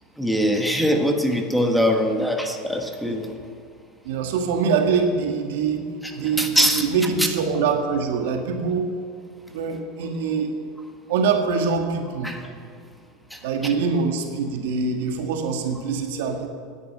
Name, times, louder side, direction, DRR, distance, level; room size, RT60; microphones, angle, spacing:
voice 1, 0.2-3.3 6.0-6.1 6.4-6.9 7.2-7.3 12.2-12.4 13.3-13.4, equal, ahead, 3 dB, 1.4 m, -22 dB
voice 2, 4.0-5.9 6.1-8.9 9.5-10.5 11.1-12.3 13.4-16.5, right 5 dB, 75° right, 4 dB, 1.7 m, -24 dB
9.9 x 8.4 x 8.7 m, 2.2 s
supercardioid pair, 110°, 0 cm